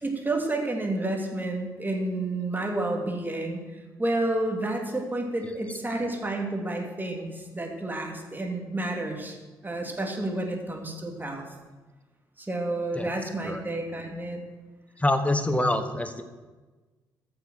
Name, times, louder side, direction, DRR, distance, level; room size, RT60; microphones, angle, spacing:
voice 1, 0.0-3.6 4.0-9.4 9.6-11.4 12.4-14.4, right 2 dB, 20° right, 1 dB, 3.0 m, -30 dB
voice 2, 15.0-16.2, left 1 dB, 15° left, 9 dB, 1.4 m, -25 dB
14.5 x 6.8 x 6.4 m, 1.3 s
figure-of-eight pair, 45°, 10 cm